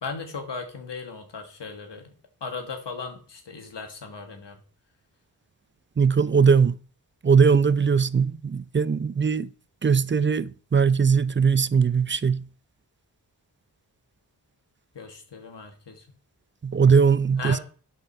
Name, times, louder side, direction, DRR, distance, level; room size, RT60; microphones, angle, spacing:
voice 1, 0.0-2.1 2.4-4.6 15.0-16.0 17.4-17.6, left 4 dB, 80° left, 1.8 m, -36 dB
voice 2, 6.0-6.7 7.2-9.5 9.8-12.4 16.6-17.6, right 6 dB, 30° right, 0.5 m, -20 dB
8.0 x 5.5 x 6.4 m
cardioid pair, 45°, 42 cm